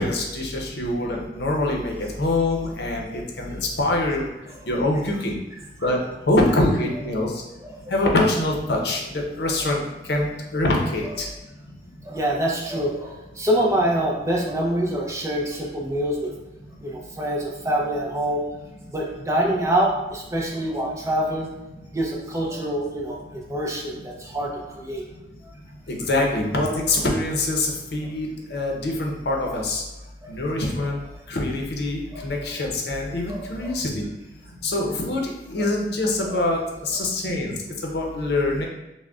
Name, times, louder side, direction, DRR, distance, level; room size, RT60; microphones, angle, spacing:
voice 1, 0.0-4.3 4.7-5.4 5.8-6.0 6.3-7.4 7.9-9.0 9.4-11.3 25.9-29.8 30.3-31.0 31.3-34.1 34.6-37.5 37.8-38.7, left 2 dB, 60° left, 0 dB, 0.7 m, -24 dB
voice 2, 7.6-7.9 12.0-16.3 16.8-18.4 18.9-21.5 21.9-25.0 30.2-30.3 32.1-32.2 33.3-33.7 35.6-35.7 36.3-36.4, right 1 dB, 15° right, -1 dB, 0.5 m, -26 dB
6.0 x 2.1 x 2.4 m, 0.97 s
head